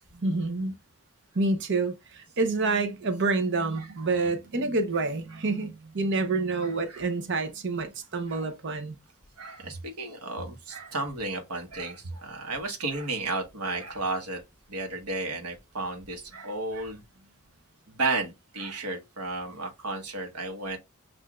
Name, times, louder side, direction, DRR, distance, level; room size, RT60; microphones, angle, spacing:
voice 1, 0.2-0.8 1.3-9.0, right 3 dB, 55° right, 0.8 m, -28 dB
voice 2, 3.8-4.1 6.6-7.1 8.3-8.5 9.4-14.4 14.7-17.0 17.9-20.8, right 3 dB, 90° right, 1.3 m, -33 dB
7.6 x 2.6 x 2.4 m
head